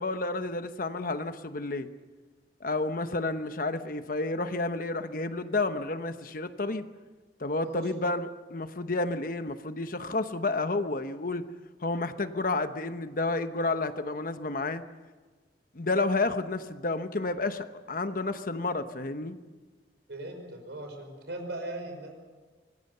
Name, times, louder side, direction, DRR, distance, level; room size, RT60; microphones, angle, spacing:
voice 1, 0.0-1.9 2.6-6.9 7.4-11.5 11.8-14.8 15.7-19.4, left 2 dB, 50° left, 10 dB, 1.0 m, -30 dB
voice 2, 20.1-22.1, right 1 dB, 70° right, 4 dB, 5.4 m, -38 dB
25.0 x 20.0 x 6.8 m, 1.4 s
head